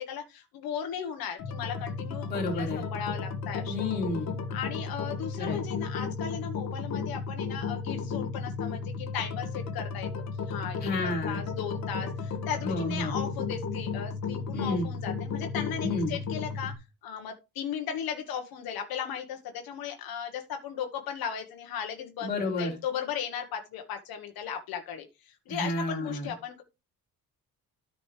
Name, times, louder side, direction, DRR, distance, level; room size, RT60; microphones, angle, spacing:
voice 1, 0.1-3.7 4.5-10.1 10.3-16.7 17.0-22.3 22.6-26.6, left 8 dB, 75° left, 5 dB, 1.3 m, -36 dB
sound 1, 1.4-16.7, left 5 dB, 45° left, 1.5 m, -34 dB
voice 2, 2.3-2.8 3.7-4.3 5.4-5.6 10.8-11.4 12.6-13.2 14.5-14.9 15.8-16.1 22.2-22.7 25.5-26.3, left 2 dB, 25° left, -2 dB, 3.1 m, -31 dB
13.5 x 5.1 x 3.3 m, 0.27 s
cardioid pair, 175°, 36 cm